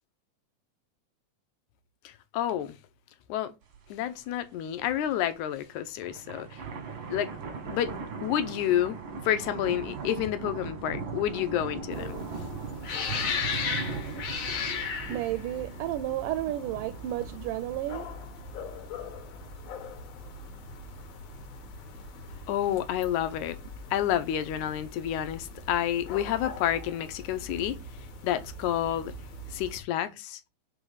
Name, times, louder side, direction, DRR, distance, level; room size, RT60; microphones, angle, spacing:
voice 1, 2.1-2.8 3.3-3.5 3.9-6.6 7.1-7.3 7.7-12.2 22.5-23.6 23.9-27.8 28.2-29.1 29.5-30.4, left 11 dB, 80° left, 1.9 m, -29 dB
sound 1, 3.7-3.8 4.2-4.3 4.7-5.1 5.9-18.0, right 5 dB, 65° right, 1.2 m, -39 dB
sound 2, 11.9-29.8, left 5 dB, 60° left, 1.9 m, -38 dB
voice 2, 15.1-18.3, right 13 dB, 85° right, 2.1 m, -32 dB
4.9 x 3.6 x 5.5 m
omnidirectional pair, 3.7 m